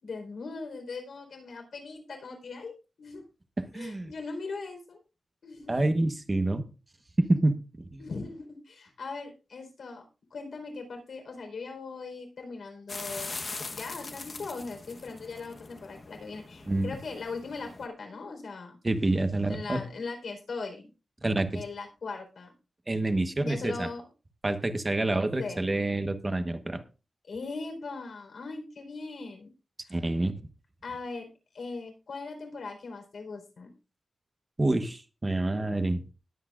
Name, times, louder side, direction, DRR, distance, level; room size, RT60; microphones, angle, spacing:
voice 1, 0.0-3.2 3.7-5.0 5.4-5.9 8.0-10.0 10.3-13.3 13.7-18.8 19.5-20.9 21.5-22.5 23.4-24.0 25.4-25.6 27.3-29.5 29.8-30.0 30.8-31.3 31.5-33.7, left 4 dB, 90° left, 3 dB, 4.2 m, -39 dB
voice 2, 3.7-4.1 5.7-6.6 7.2-8.0 16.7-16.9 18.8-19.8 21.2-21.6 22.9-23.9 24.4-26.8 29.9-30.3 34.6-36.0, right 2 dB, 25° right, 9 dB, 1.2 m, -27 dB
sound 1, 12.9-17.9, left 3 dB, 40° left, 1.1 m, -41 dB
20.0 x 8.5 x 2.5 m, 0.32 s
wide cardioid pair, 145°, 0 cm